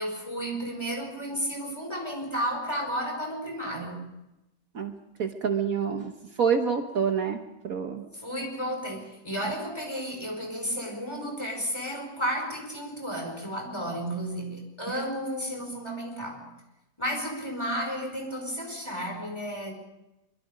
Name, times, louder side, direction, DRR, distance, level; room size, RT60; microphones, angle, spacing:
voice 1, 0.0-4.0 8.1-16.5 17.0-19.7, equal, 15° left, 5.2 m, -32 dB
voice 2, 5.2-6.1 6.4-7.4 7.6-8.0, right 6 dB, 60° right, 1.7 m, -26 dB
25.0 x 23.5 x 5.2 m
omnidirectional pair, 1.7 m